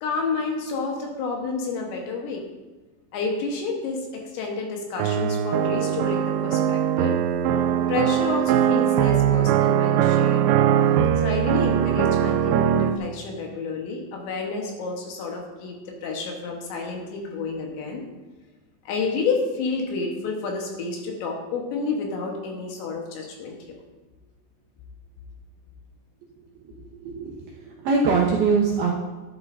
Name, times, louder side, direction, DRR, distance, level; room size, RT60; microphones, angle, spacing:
voice 1, 0.0-2.5 3.1-7.2 7.9-10.5 11.2-18.0 18.9-23.8, left 4 dB, 70° left, 0 dB, 3.4 m, -30 dB
sound 1, 5.0-13.0, right 10 dB, 90° right, 2.5 m, -21 dB
voice 2, 26.9-28.9, right 4 dB, 70° right, -3 dB, 2.3 m, -23 dB
12.5 x 10.5 x 2.7 m, 1.2 s
omnidirectional pair, 5.7 m